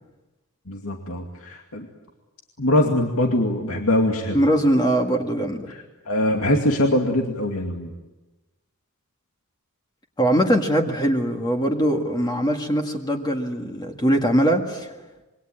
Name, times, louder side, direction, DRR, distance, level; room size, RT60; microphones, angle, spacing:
voice 1, 0.7-1.9 2.6-4.4 6.1-7.9, left 1 dB, 70° left, 2 dB, 2.5 m, -22 dB
voice 2, 4.3-5.7 10.2-14.9, right 1 dB, 20° left, 3 dB, 1.9 m, -21 dB
27.0 x 23.0 x 9.0 m, 1.1 s
head